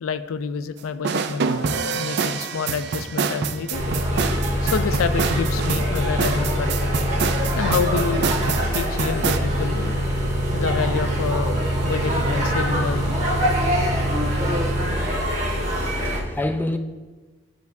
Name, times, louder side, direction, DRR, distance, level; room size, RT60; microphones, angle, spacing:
voice 1, 0.0-3.8 4.6-6.9 7.6-8.3 8.7-9.9 10.5-13.2 15.8-16.0, left 5 dB, 85° left, 0.4 m, -28 dB
sound 1, 1.0-9.4, right 5 dB, 55° right, 0.4 m, -26 dB
sound 2, 3.7-16.2, equal, 35° right, 1.2 m, -23 dB
voice 2, 15.5-16.8, left 1 dB, 10° left, 0.4 m, -28 dB
11.5 x 4.7 x 2.7 m
head